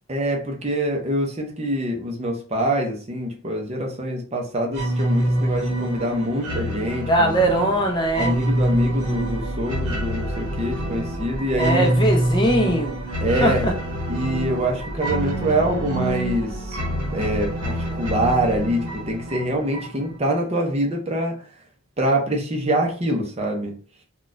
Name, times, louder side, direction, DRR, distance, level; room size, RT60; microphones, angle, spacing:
voice 1, 0.1-7.3 8.2-11.9 13.2-13.7 14.1-16.8 17.1-21.5 22.0-23.7, right 1 dB, 30° right, 2 dB, 0.6 m, -25 dB
sound 1, 4.7-20.2, right 1 dB, 90° right, 1.1 m, -26 dB
voice 2, 7.1-8.4 11.5-12.9 13.4-13.7, right 1 dB, 20° left, 2 dB, 0.5 m, -20 dB
sound 2, 8.0-18.6, right 1 dB, 55° left, 1.4 m, -35 dB
3.9 x 2.3 x 2.5 m, 0.38 s
head